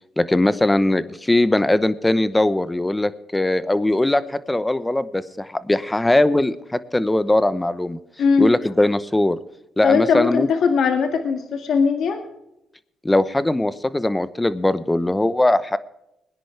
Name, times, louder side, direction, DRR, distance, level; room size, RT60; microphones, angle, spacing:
voice 1, 0.2-8.0 8.4-9.4 9.8-10.5 13.0-15.8, left 1 dB, 10° left, 14 dB, 0.9 m, -20 dB
voice 2, 8.2-8.5 9.8-12.2, left 5 dB, 70° left, 5 dB, 1.9 m, -19 dB
21.5 x 10.0 x 3.4 m, 0.84 s
cardioid pair, 90°, 0 cm